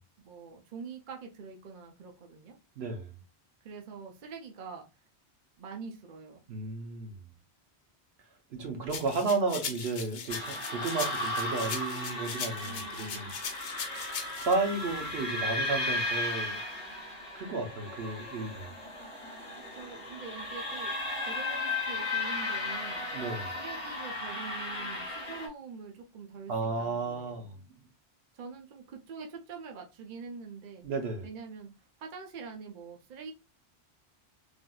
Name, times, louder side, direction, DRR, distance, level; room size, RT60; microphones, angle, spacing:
voice 1, 0.2-2.6 3.6-4.9 5.6-6.4 12.6-13.3 19.7-23.1 23.5-27.5 28.3-30.9 31.2-31.7 32.0-33.3, right 5 dB, 55° right, 0.7 m, -45 dB
voice 2, 2.8-3.1 6.5-7.2 8.5-13.3 14.4-16.6 17.3-18.7 23.1-23.5 26.5-27.6 30.8-31.3, right 3 dB, 70° right, 1.0 m, -33 dB
sound 1, 8.9-14.5, left 6 dB, 70° left, 0.8 m, -39 dB
sound 2, 10.3-25.5, left 2 dB, 30° left, 0.9 m, -35 dB
3.4 x 2.5 x 2.2 m
omnidirectional pair, 1.1 m